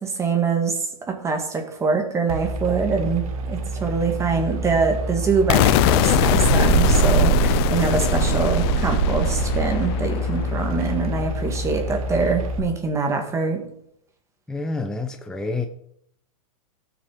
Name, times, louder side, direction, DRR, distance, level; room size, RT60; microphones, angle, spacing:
voice 1, 0.0-13.6, right 4 dB, 15° right, 2.2 m, -24 dB
sound 1, 2.3-12.6, right 4 dB, 70° right, 1.9 m, -24 dB
sound 2, 5.5-11.4, left 16 dB, 40° left, 0.5 m, -23 dB
voice 2, 14.5-15.7, left 3 dB, 5° left, 0.7 m, -28 dB
17.5 x 6.2 x 5.1 m
hypercardioid pair, 135°, 19 cm